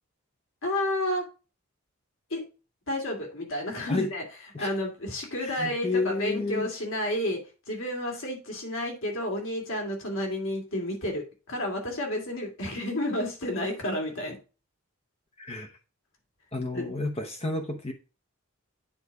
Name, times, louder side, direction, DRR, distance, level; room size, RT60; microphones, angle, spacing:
voice 1, 0.6-1.2 2.3-2.4 2.9-4.2 4.6-7.4 7.7-14.4 16.7-16.9, left 1 dB, 65° left, 0 dB, 2.7 m, -31 dB
voice 2, 5.4-6.7 15.4-15.7 16.5-17.9, left 3 dB, 30° left, 4 dB, 0.9 m, -30 dB
8.8 x 4.1 x 4.7 m, 0.33 s
head